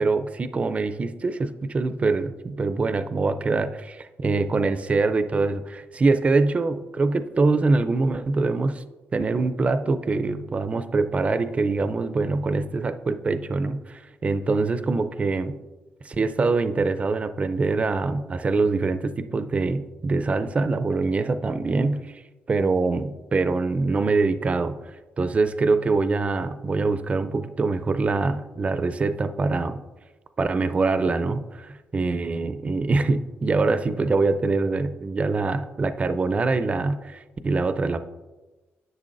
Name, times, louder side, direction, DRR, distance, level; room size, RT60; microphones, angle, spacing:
voice 1, 0.0-3.9 4.2-8.8 9.1-15.5 16.0-22.2 22.5-24.8 25.2-29.8 30.4-38.0, right 3 dB, 30° right, 11 dB, 0.4 m, -24 dB
10.5 x 6.9 x 2.5 m, 1.2 s
cardioid pair, 100°, 4 cm